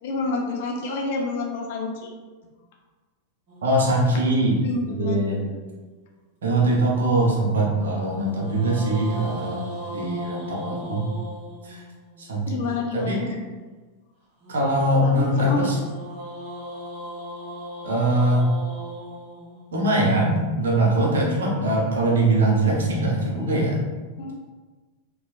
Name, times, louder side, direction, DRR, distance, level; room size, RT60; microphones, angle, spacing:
voice 1, 0.0-2.1 4.6-5.2 12.5-13.4 15.0-15.7 24.2-24.3, left 3 dB, 50° left, 0 dB, 0.5 m, -28 dB
sound 1, 3.5-5.9 8.1-12.3 14.4-20.6, equal, 45° right, 1.1 m, -39 dB
voice 2, 3.6-4.6 4.9-5.5 6.4-11.0 11.6-11.8 12.2-12.4 12.9-13.3 14.5-15.8 17.8-18.5 19.7-23.8, right 1 dB, 65° right, -3 dB, 0.7 m, -22 dB
2.9 x 2.1 x 2.4 m, 1.3 s
figure-of-eight pair, 90°, 0 cm